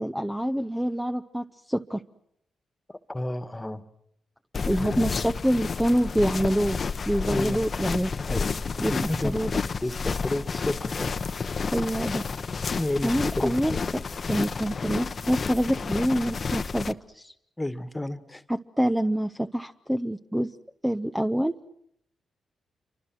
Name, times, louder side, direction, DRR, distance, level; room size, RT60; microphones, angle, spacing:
voice 1, 0.0-2.0 4.7-6.8 7.1-8.1 8.8-8.9 9.2-9.6 11.7-12.2 13.0-14.0 14.3-17.3 18.5-20.5 20.8-21.5, equal, 5° right, 8 dB, 0.9 m, -26 dB
voice 2, 2.9-3.8 7.3-7.6 8.2-8.4 8.9-9.4 9.8-11.1 12.8-13.8 17.6-18.4, left 1 dB, 15° left, 12 dB, 1.8 m, -31 dB
sound 1, 4.5-16.9, left 5 dB, 50° left, 1.0 m, -30 dB
28.5 x 24.5 x 6.1 m, 0.74 s
supercardioid pair, 50°, 0 cm